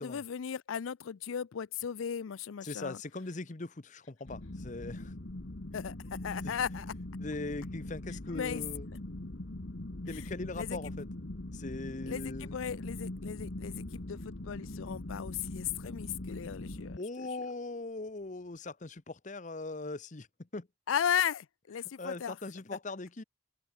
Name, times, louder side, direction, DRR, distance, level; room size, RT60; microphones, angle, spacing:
voice 1, 0.0-3.0 5.7-6.9 8.3-8.6 10.1-10.3 10.5-10.8 12.1-17.3 20.9-22.4, left 8 dB, 80° left, 0.4 m, -36 dB
voice 2, 2.6-5.1 6.4-6.6 7.2-8.9 10.1-11.1 11.5-12.5 17.0-20.7 22.0-23.2, left 2 dB, 40° left, 0.9 m, -40 dB
sound 1, 4.3-17.0, left 1 dB, 60° left, 1.4 m, -42 dB
head